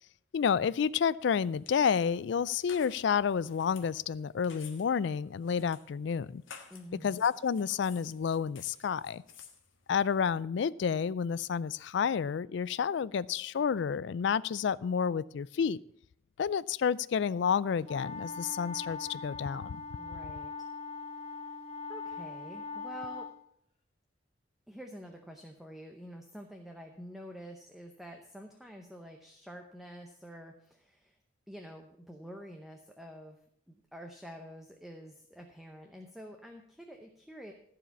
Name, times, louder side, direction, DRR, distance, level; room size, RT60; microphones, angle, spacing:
voice 1, 0.3-6.4 7.0-9.2 9.9-15.8 16.4-19.8, left 7 dB, 60° left, 20 dB, 0.3 m, -30 dB
sound 1, 1.2-10.4, left 7 dB, 85° left, 1.4 m, -55 dB
voice 2, 6.7-7.2 20.0-20.7 21.3-21.5 21.9-23.3 24.7-31.2 31.5-33.4 33.7-37.5, equal, ahead, 3 dB, 0.7 m, -48 dB
sound 2, 17.8-23.3, left 4 dB, 30° left, 1.6 m, -41 dB
14.5 x 5.0 x 7.1 m, 0.70 s
head